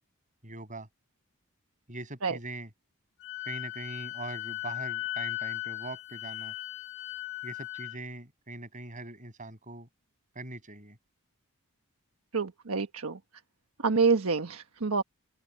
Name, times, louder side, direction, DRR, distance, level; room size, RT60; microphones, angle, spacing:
voice 1, 0.4-0.9 1.9-2.7 3.4-6.5 7.4-9.9 10.3-11.0, right 2 dB, 35° right, 6.5 m, -42 dB
Wind instrument woodwind instrument, 3.2-8.0, left 17 dB, 50° left, 3.2 m, -37 dB
voice 2, 12.3-13.2 13.8-15.0, right 4 dB, 75° right, 1.3 m, -27 dB
open air
head